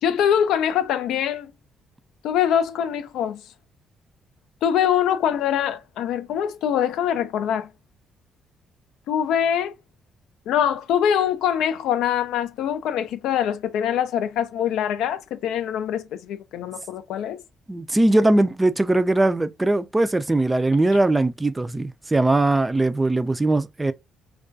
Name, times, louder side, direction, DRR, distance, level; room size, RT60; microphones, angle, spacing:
voice 1, 0.0-1.5 2.2-3.4 4.6-7.7 9.1-9.7 10.5-17.4, left 9 dB, 85° left, 0.3 m, -23 dB
voice 2, 17.7-23.9, right 2 dB, 15° right, 0.3 m, -20 dB
2.3 x 2.3 x 2.4 m
cardioid pair, 90°, 0 cm